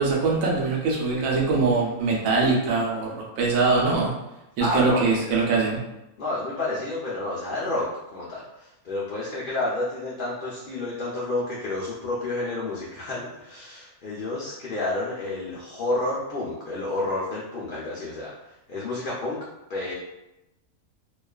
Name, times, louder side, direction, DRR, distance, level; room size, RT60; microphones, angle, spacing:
voice 1, 0.0-4.1 4.6-5.8, right 3 dB, 75° right, -3 dB, 1.0 m, -22 dB
voice 2, 4.6-5.1 6.2-18.3 18.7-19.4 19.7-19.9, left 2 dB, 85° left, -6 dB, 0.4 m, -30 dB
2.4 x 2.3 x 2.2 m, 0.91 s
omnidirectional pair, 1.5 m